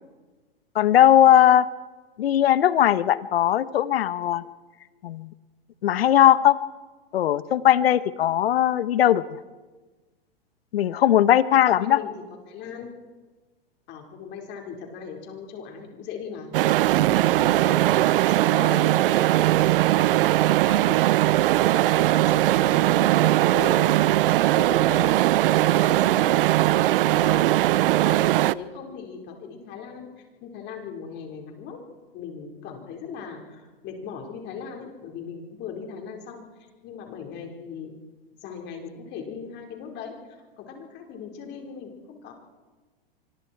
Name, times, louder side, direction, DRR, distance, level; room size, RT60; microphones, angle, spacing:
voice 1, 0.7-1.7 2.2-4.4 5.0-5.3 5.8-6.6 7.1-9.2 10.7-12.0, left 11 dB, 75° left, 15 dB, 1.1 m, -19 dB
voice 2, 11.7-12.1 12.5-12.9 13.9-21.0 21.7-26.4 26.7-31.8 32.1-36.4 36.8-37.9 38.3-40.1 40.6-42.3, left 6 dB, 35° left, 1 dB, 5.0 m, -39 dB
sound 1, 16.5-28.5, right 15 dB, 65° right, 0.7 m, -20 dB
25.5 x 23.5 x 4.7 m, 1.3 s
hypercardioid pair, 130°, 30 cm